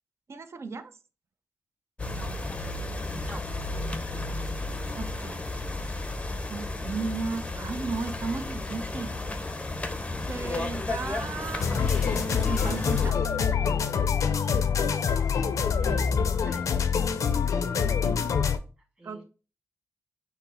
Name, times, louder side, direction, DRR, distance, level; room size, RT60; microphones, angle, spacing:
voice 1, 0.3-0.9 4.9-5.4 6.3-9.2 10.3-13.2 19.0-19.2, right 4 dB, 55° right, 9 dB, 0.5 m, -35 dB
sound 1, 2.0-13.1, left 2 dB, 20° left, 0.5 m, -33 dB
voice 2, 2.9-3.4 15.8-18.1 19.0-19.2, right 1 dB, 20° right, -1 dB, 1.7 m, -47 dB
sound 2, 11.6-18.6, left 6 dB, 80° left, 0.5 m, -25 dB
5.7 x 2.0 x 4.3 m, 0.34 s
cardioid pair, 80°, 6 cm